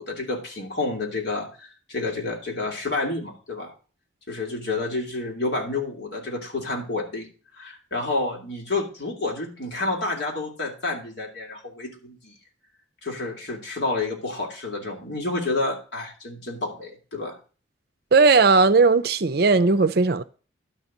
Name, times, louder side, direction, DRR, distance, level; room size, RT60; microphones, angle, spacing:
voice 1, 0.0-3.7 4.3-7.3 7.5-12.3 13.0-17.4, left 2 dB, 60° left, 2.6 m, -29 dB
voice 2, 18.1-20.2, right 4 dB, 55° right, 0.5 m, -17 dB
11.5 x 4.0 x 7.2 m
head